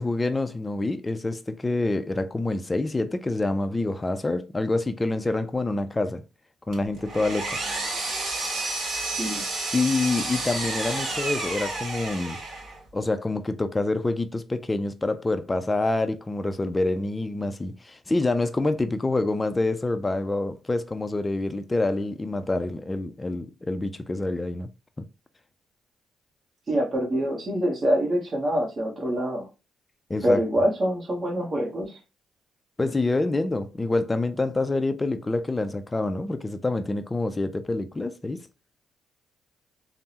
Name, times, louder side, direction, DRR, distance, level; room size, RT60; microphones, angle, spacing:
voice 1, 0.0-6.2 6.7-7.6 9.7-12.4 12.9-24.7 25.0-25.1 30.1-30.4 32.8-38.5, left 2 dB, 20° left, 0.3 m, -27 dB
Power tool, 6.7-12.8, right 2 dB, 55° right, 1.4 m, -30 dB
voice 2, 9.0-9.4 26.7-29.5 30.2-32.0, equal, 40° right, 1.0 m, -25 dB
3.4 x 2.0 x 2.8 m
cardioid pair, 90°, 0 cm